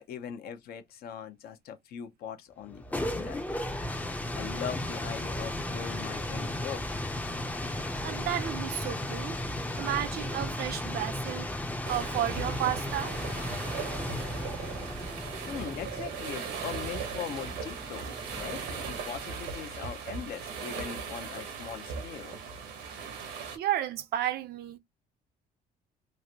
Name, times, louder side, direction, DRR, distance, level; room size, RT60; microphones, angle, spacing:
voice 1, 0.0-3.8 4.3-7.0 15.5-22.4, left 8 dB, 65° left, 0.7 m, -41 dB
sound 1, 2.6-19.3, left 1 dB, 10° left, 0.5 m, -35 dB
voice 2, 7.7-9.4 9.8-13.2 23.5-24.8, right 12 dB, 70° right, 0.5 m, -33 dB
sound 2, 11.8-23.6, right 5 dB, 90° right, 1.0 m, -38 dB
3.2 x 2.5 x 2.7 m
cardioid pair, 110°, 17 cm